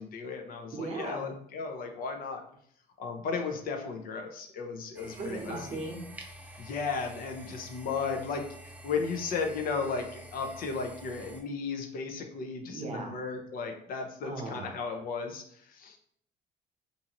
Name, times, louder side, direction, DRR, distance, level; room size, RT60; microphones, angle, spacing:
voice 1, 0.0-2.4 3.0-5.6 6.6-16.0, left 5 dB, 60° left, 4 dB, 0.7 m, -35 dB
voice 2, 0.7-1.3 5.2-6.0 12.7-13.1 14.2-14.9, right 3 dB, 40° right, 1 dB, 0.8 m, -37 dB
sound 1, 4.9-11.4, right 1 dB, 10° right, 0.4 m, -48 dB
2.7 x 2.5 x 2.9 m, 0.65 s
cardioid pair, 110°, 17 cm